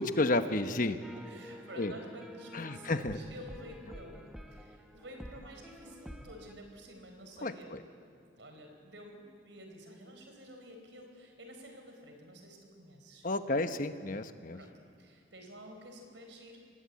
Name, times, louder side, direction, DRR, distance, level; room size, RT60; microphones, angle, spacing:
voice 1, 0.0-1.0 1.8-1.9 2.5-3.2 7.4-7.8 13.2-14.6, left 2 dB, 45° left, 9 dB, 1.1 m, -31 dB
voice 2, 0.6-7.8 8.3-13.3 14.5-16.8, equal, 80° right, 4 dB, 4.7 m, -50 dB
sound 1, 1.0-6.5, equal, ahead, 1.2 m, -50 dB
26.0 x 20.0 x 8.5 m, 2.3 s
head